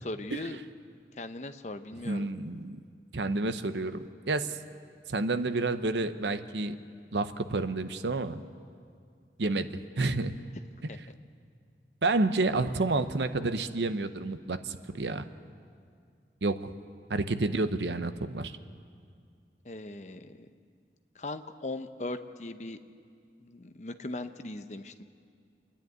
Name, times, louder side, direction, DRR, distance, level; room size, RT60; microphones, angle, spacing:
voice 1, 0.0-0.6 1.2-2.3 10.9-11.0 19.6-20.4 21.2-22.8 23.4-25.0, left 2 dB, 40° left, 9 dB, 0.8 m, -39 dB
voice 2, 2.0-2.8 3.1-4.6 5.1-6.8 7.1-8.4 9.4-10.4 12.0-15.2 16.4-16.7 17.1-18.5, right 2 dB, 80° right, 10 dB, 0.8 m, -29 dB
27.5 x 10.5 x 9.4 m, 2.2 s
head